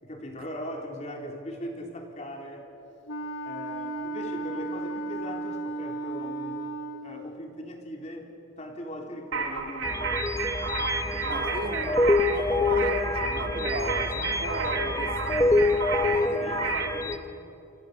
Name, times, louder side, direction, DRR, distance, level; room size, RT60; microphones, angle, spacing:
voice 1, 0.0-2.7 3.5-6.6 7.0-8.3 8.6-10.3 11.1-11.5 11.9-12.2 16.2-17.4, equal, 30° left, 2 dB, 3.4 m, -40 dB
Wind instrument woodwind instrument, 3.1-7.3, right 2 dB, 60° left, 1.5 m, -34 dB
sound 1, 9.3-17.0, right 5 dB, 80° right, 3.4 m, -32 dB
sound 2, 9.8-17.2, left 2 dB, 15° left, 1.0 m, -26 dB
voice 2, 11.3-16.6, right 1 dB, 45° right, 4 dB, 2.4 m, -36 dB
29.5 x 26.0 x 6.7 m, 2.8 s
head